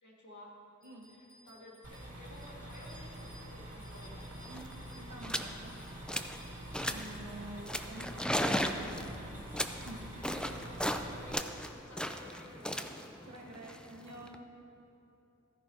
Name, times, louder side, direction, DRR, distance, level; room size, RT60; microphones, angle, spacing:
voice 1, 0.0-0.5 1.1-4.2 7.3-7.8 10.1-12.9, left 1 dB, 80° left, -4 dB, 2.2 m, -54 dB
Bicycle bell, 0.8-10.5, left 1 dB, 25° left, 2.8 m, -62 dB
sound 1, 1.8-11.3, right 1 dB, 55° right, 2.0 m, -46 dB
sound 2, 4.2-4.3 4.5-4.7 5.2-5.5 5.9-6.4 6.7-7.2 7.7-11.0 11.3-14.4, equal, 5° left, 0.5 m, -36 dB
voice 2, 4.9-5.7 6.9-8.6 9.8-10.1 13.3-14.5, right 1 dB, 70° right, 0 dB, 1.3 m, -48 dB
14.0 x 10.5 x 2.9 m, 2.9 s
wide cardioid pair, 65°, 29 cm